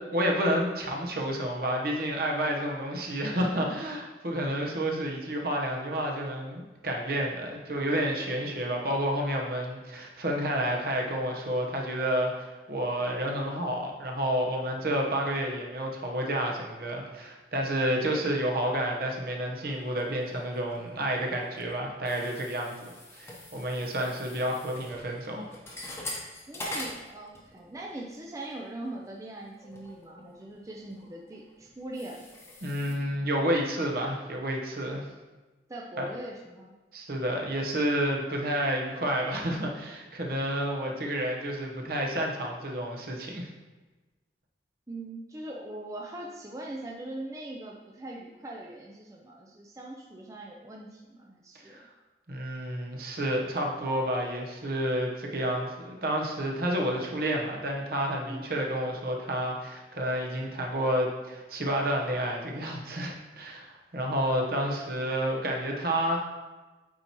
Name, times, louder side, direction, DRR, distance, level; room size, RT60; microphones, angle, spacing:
voice 1, 0.0-25.5 32.6-35.0 36.0-36.1 36.9-43.5 51.7-51.8 52.3-66.3, equal, 55° right, 0 dB, 1.0 m, -30 dB
sound 1, 20.0-20.9 21.2-27.8 28.1-28.4 28.9-29.0 29.6-33.0, left 1 dB, 15° left, 0.9 m, -43 dB
voice 2, 26.5-32.2 35.7-36.7 44.9-51.9 58.3-58.4, right 1 dB, 20° right, -2 dB, 0.5 m, -41 dB
8.7 x 4.3 x 3.0 m, 1.2 s
head